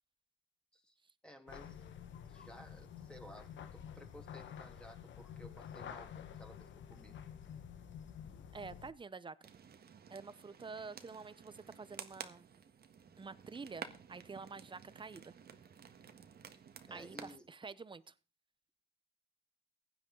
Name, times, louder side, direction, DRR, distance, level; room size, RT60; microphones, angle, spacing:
voice 1, 1.2-1.8 2.3-7.2 16.9-17.5, equal, 5° left, 3 dB, 3.0 m, -56 dB
sound 1, 1.5-8.9, left 8 dB, 70° left, 1.4 m, -50 dB
voice 2, 8.5-9.4 10.1-12.5 13.2-15.3 16.9-18.1, right 4 dB, 25° right, 17 dB, 0.8 m, -48 dB
sound 2, 9.4-17.4, right 7 dB, 50° right, 1.5 m, -53 dB
16.0 x 10.5 x 3.9 m, 0.35 s
cardioid pair, 90°, 20 cm